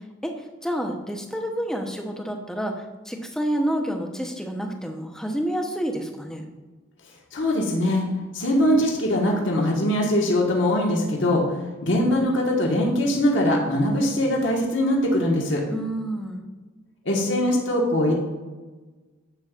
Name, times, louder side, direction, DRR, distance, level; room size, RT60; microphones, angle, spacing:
voice 1, 0.6-6.5 15.7-16.5, equal, 5° left, 2 dB, 0.8 m, -29 dB
voice 2, 7.3-8.0 8.3-15.6 17.0-18.1, left 1 dB, 65° left, -1 dB, 1.4 m, -22 dB
10.5 x 8.4 x 2.4 m, 1.3 s
head